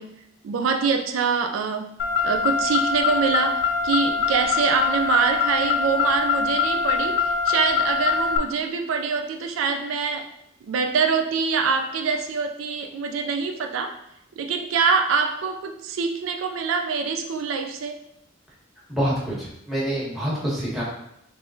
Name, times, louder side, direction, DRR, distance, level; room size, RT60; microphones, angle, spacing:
voice 1, 0.0-10.3 10.6-13.9 14.4-18.0, right 5 dB, 80° right, 5 dB, 0.3 m, -25 dB
Car, 2.0-8.4, left 5 dB, 60° left, 0.4 m, -23 dB
voice 2, 18.9-20.8, equal, ahead, -7 dB, 1.2 m, -26 dB
3.5 x 3.2 x 2.6 m, 0.78 s
head